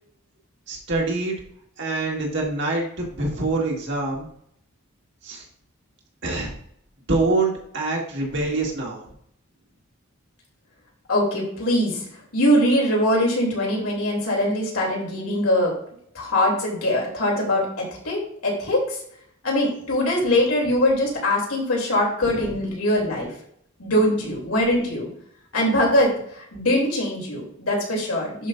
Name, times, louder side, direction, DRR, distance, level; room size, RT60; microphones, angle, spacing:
voice 1, 0.7-1.4 1.8-4.3 5.2-5.4 6.2-6.5 7.1-9.0 22.2-22.4, right 2 dB, 55° right, -1 dB, 1.9 m, -25 dB
voice 2, 11.1-15.7 16.1-19.0 19.4-23.3 23.8-25.1 25.5-28.5, left 1 dB, 85° left, -3 dB, 3.2 m, -22 dB
11.0 x 5.0 x 2.6 m, 0.68 s
head